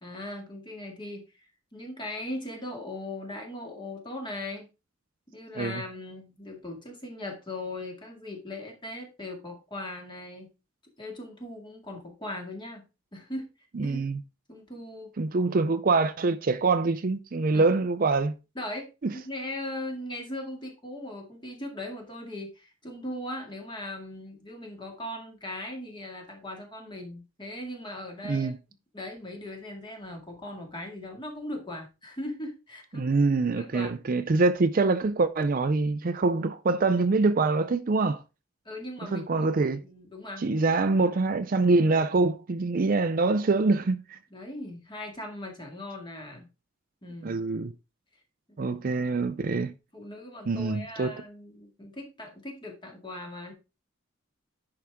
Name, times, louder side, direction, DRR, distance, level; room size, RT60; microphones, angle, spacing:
voice 1, 0.0-4.7 5.3-10.5 11.0-12.8 13.1-13.5 13.8-14.0 14.5-15.1 17.5-17.7 18.6-18.9 19.2-28.5 28.9-33.0 33.5-34.0 38.7-39.5 39.8-41.1 44.3-46.5 47.0-47.4 48.6-48.8 49.9-53.5, left 1 dB, 20° left, 2.0 m, -39 dB
voice 2, 13.7-14.2 15.2-18.3 19.0-19.1 28.2-28.6 32.9-38.2 39.1-39.8 40.4-44.2 47.2-47.7 48.6-49.7 50.5-51.2, right 3 dB, 40° right, 0.5 m, -25 dB
10.5 x 4.9 x 3.5 m
head